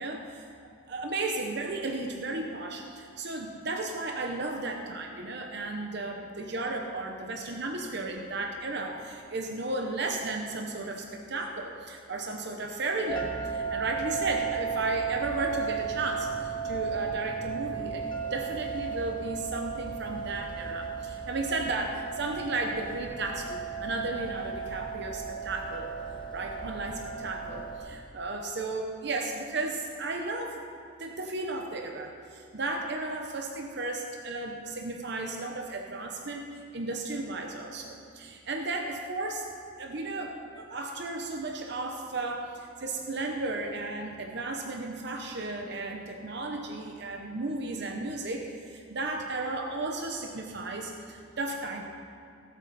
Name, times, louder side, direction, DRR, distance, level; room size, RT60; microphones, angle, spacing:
voice 1, 0.0-18.1 18.3-25.9 26.3-30.6 31.0-39.5 39.8-51.9, right 2 dB, 60° right, 2 dB, 0.9 m, -34 dB
sound 1, 13.1-27.8, right 6 dB, 25° left, 1.2 m, -35 dB
17.5 x 8.0 x 4.2 m, 2.6 s
head